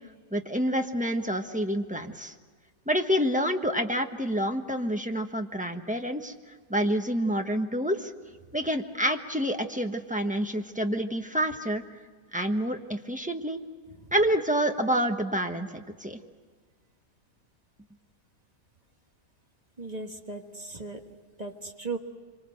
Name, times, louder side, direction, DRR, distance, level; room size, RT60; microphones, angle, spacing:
voice 1, 0.3-2.3 2.9-6.3 6.7-8.1 8.5-11.8 12.3-13.6 14.1-16.2, equal, 5° right, 4 dB, 1.0 m, -28 dB
voice 2, 19.8-21.0 21.4-22.0, right 3 dB, 25° right, 4 dB, 1.4 m, -37 dB
26.0 x 25.0 x 7.9 m, 1.5 s
omnidirectional pair, 1.8 m